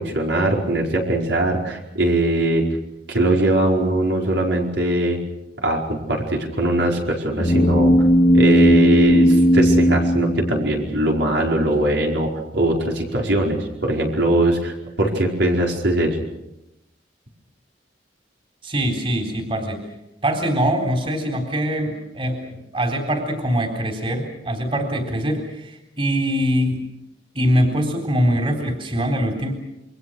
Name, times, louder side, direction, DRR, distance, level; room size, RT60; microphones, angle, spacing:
voice 1, 0.0-2.6 3.1-5.2 5.6-7.9 8.3-16.2, right 1 dB, 80° right, 0 dB, 5.0 m, -21 dB
sound 1, 7.4-11.1, equal, 30° left, 1.8 m, -16 dB
voice 2, 18.6-19.8 20.2-26.8 27.3-29.5, equal, 30° right, 4 dB, 3.8 m, -23 dB
28.0 x 23.5 x 6.4 m, 0.88 s
head